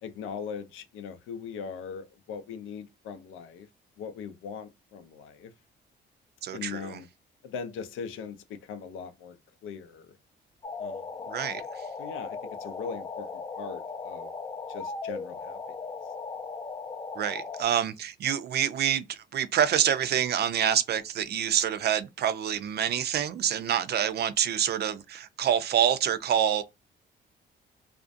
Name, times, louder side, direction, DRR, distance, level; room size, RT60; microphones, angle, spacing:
voice 1, 0.0-3.7 4.0-5.5 6.5-7.1 7.4-10.1 10.8-11.3 12.0-14.3 14.7-15.6, left 6 dB, 90° left, 0.5 m, -40 dB
voice 2, 6.4-7.0 11.3-11.8 17.2-26.6, right 9 dB, 55° right, 0.4 m, -27 dB
sound 1, 10.6-17.6, left 4 dB, 20° left, 0.4 m, -38 dB
2.5 x 2.1 x 2.5 m
cardioid pair, 90°, 20 cm